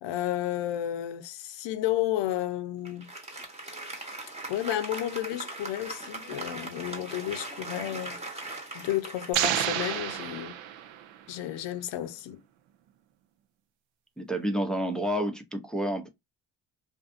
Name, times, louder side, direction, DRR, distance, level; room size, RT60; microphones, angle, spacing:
voice 1, 0.0-3.1 4.5-8.2 8.7-10.6 11.3-12.4, left 13 dB, 70° left, 0.6 m, -32 dB
Applause, 2.8-10.5, right 2 dB, 15° right, 1.0 m, -40 dB
sound 1, 9.3-11.2, right 11 dB, 80° right, 0.5 m, -30 dB
voice 2, 14.2-16.1, equal, ahead, 0.6 m, -29 dB
2.6 x 2.4 x 2.5 m
supercardioid pair, 75°, 45 cm